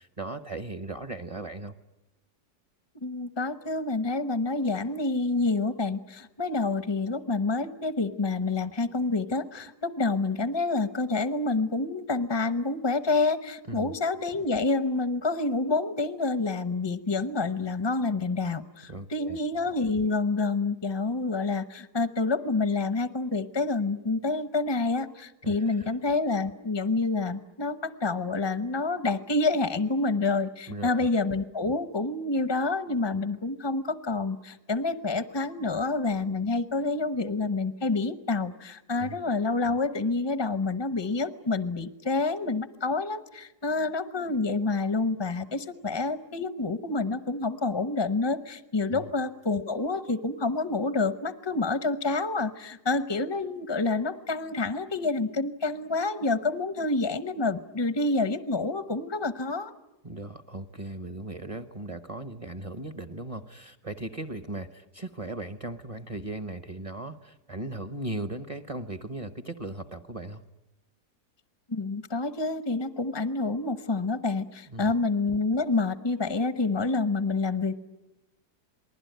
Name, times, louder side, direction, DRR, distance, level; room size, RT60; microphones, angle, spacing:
voice 1, 0.0-1.7 13.7-13.9 18.9-19.4 25.4-25.9 30.7-31.1 38.9-39.2 48.9-49.0 60.0-70.4 74.7-74.9, right 2 dB, 25° right, 9 dB, 0.8 m, -37 dB
voice 2, 3.0-59.7 71.7-77.8, left 3 dB, 25° left, 11 dB, 0.7 m, -28 dB
28.0 x 20.0 x 9.3 m, 0.97 s
omnidirectional pair, 1.7 m